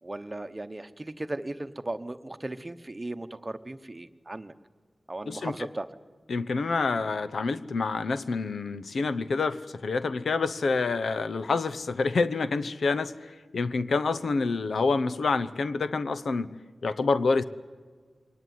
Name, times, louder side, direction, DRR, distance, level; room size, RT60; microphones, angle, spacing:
voice 1, 0.0-4.5 5.1-5.9, right 2 dB, 25° right, 11 dB, 1.0 m, -37 dB
voice 2, 6.3-16.5 16.8-17.4, left 4 dB, 85° left, 13 dB, 0.9 m, -27 dB
22.5 x 19.0 x 9.5 m, 1.6 s
wide cardioid pair, 90°, 0 cm